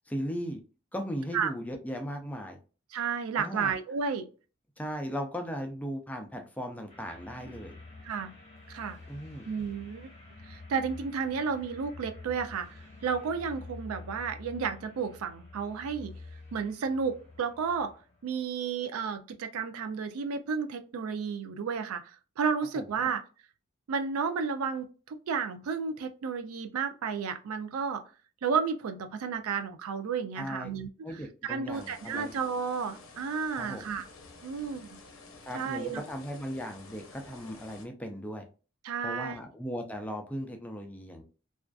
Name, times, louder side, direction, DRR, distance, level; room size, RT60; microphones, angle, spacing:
voice 1, 0.1-0.6 0.9-2.6 3.4-3.7 4.8-7.8 9.1-9.5 22.8-22.9 30.4-30.7 31.0-32.3 33.6-33.8 35.4-38.5 39.0-41.2, equal, 5° left, 0.4 m, -37 dB
voice 2, 2.9-4.3 8.0-8.3 8.7-9.0 9.4-10.1 10.4-16.1 16.5-17.9 18.2-23.2 23.9-28.1 28.4-30.9 31.5-34.0 34.4-34.9 35.5-36.0 38.8-39.4, right 6 dB, 85° right, 0.4 m, -32 dB
sound 1, 6.9-18.3, left 3 dB, 35° left, 0.9 m, -48 dB
sound 2, 31.7-37.9, left 3 dB, 65° left, 0.6 m, -51 dB
2.4 x 2.3 x 2.3 m
head